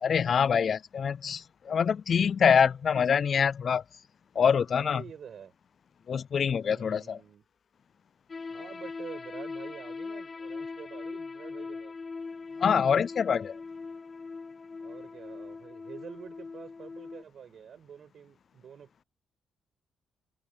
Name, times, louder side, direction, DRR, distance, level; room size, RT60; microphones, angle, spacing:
voice 1, 0.0-3.8 4.4-5.0 6.1-7.2 12.6-13.6, left 7 dB, 50° left, 0.4 m, -25 dB
voice 2, 4.7-5.5 6.6-7.4 8.5-11.9 14.8-18.9, right 8 dB, 55° right, 7.8 m, -47 dB
sound 1, 8.3-17.2, left 4 dB, 35° left, 1.7 m, -41 dB
cardioid pair, 90°, 0 cm